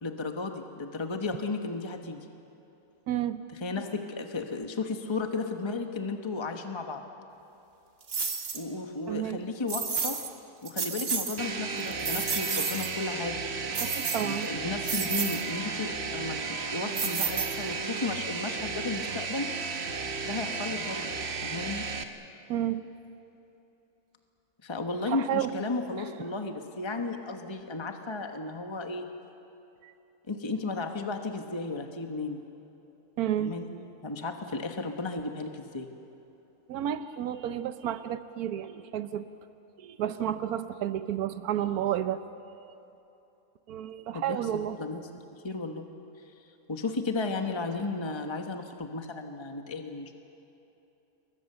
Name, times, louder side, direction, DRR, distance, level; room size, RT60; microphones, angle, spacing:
voice 1, 0.0-2.3 3.5-7.0 8.5-10.2 10.6-13.4 14.2-19.5 20.2-21.0 21.4-21.9 24.6-29.1 30.3-32.4 33.4-33.7 34.0-35.9 44.1-44.4 44.8-45.9 46.7-50.1, left 3 dB, 20° left, 4 dB, 1.2 m, -34 dB
voice 2, 3.1-3.4 9.1-9.4 13.8-14.5 22.5-22.8 25.1-25.5 29.8-29.9 33.2-33.5 36.7-39.3 39.8-42.2 43.7-44.8, right 11 dB, 90° right, 11 dB, 1.2 m, -31 dB
sound 1, 8.1-8.6 9.7-10.3 10.7-11.4 11.8-12.9 13.7-14.5 14.8-15.4 17.0-17.8, right 5 dB, 65° right, 2.1 m, -31 dB
sound 2, 11.4-22.0, right 4 dB, 45° right, 1.4 m, -34 dB
28.5 x 22.5 x 6.8 m, 3.0 s
omnidirectional pair, 1.5 m